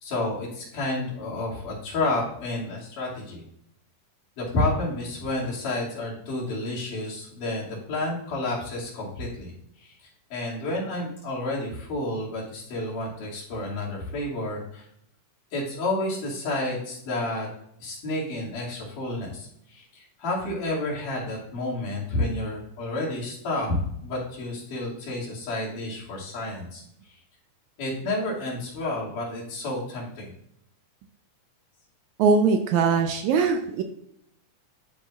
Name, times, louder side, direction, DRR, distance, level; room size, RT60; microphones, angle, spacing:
voice 1, 0.0-3.4 4.4-9.5 9.8-9.9 10.3-14.9 15.5-17.5 17.8-26.8 27.8-30.3, left 2 dB, 75° left, -5 dB, 4.0 m, -30 dB
voice 2, 32.2-33.8, right 5 dB, 75° right, 6 dB, 1.8 m, -21 dB
11.5 x 8.1 x 2.4 m, 0.72 s
omnidirectional pair, 3.7 m